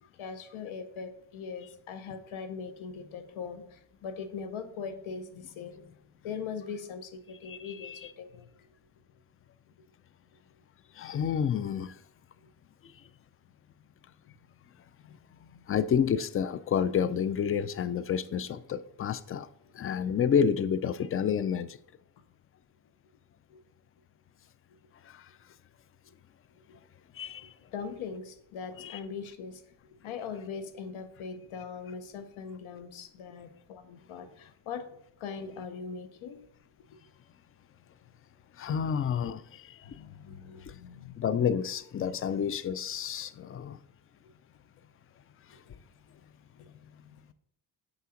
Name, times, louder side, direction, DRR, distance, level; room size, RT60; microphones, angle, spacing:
voice 1, 0.2-5.8 6.2-8.5 15.1-15.6 23.5-23.6 27.7-29.6 30.0-34.8 35.2-36.4 38.9-39.0 39.8-41.2 46.6-46.9, left 6 dB, 85° left, 0.8 m, -41 dB
voice 2, 7.5-8.1 11.0-11.9 15.7-19.5 19.7-21.8 25.1-25.3 27.2-27.5 28.8-29.0 38.6-39.8 41.2-43.8, left 7 dB, 30° left, 0.4 m, -29 dB
6.4 x 5.6 x 3.8 m
cardioid pair, 65°, 48 cm